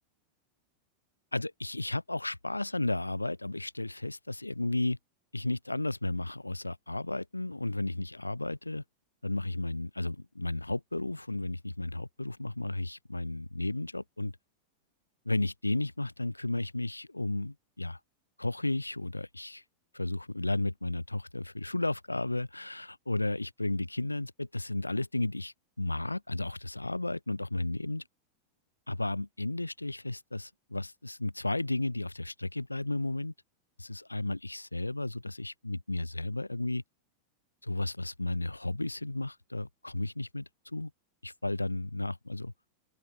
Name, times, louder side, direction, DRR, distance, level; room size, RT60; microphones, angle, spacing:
voice 1, 1.3-5.0 5.3-8.8 9.2-14.3 15.3-18.0 18.4-19.6 19.9-28.0 28.9-33.3 33.8-36.8 37.6-40.9 41.2-42.5, left 2 dB, 85° left, 7.1 m, -33 dB
open air
figure-of-eight pair, 90°, 0 cm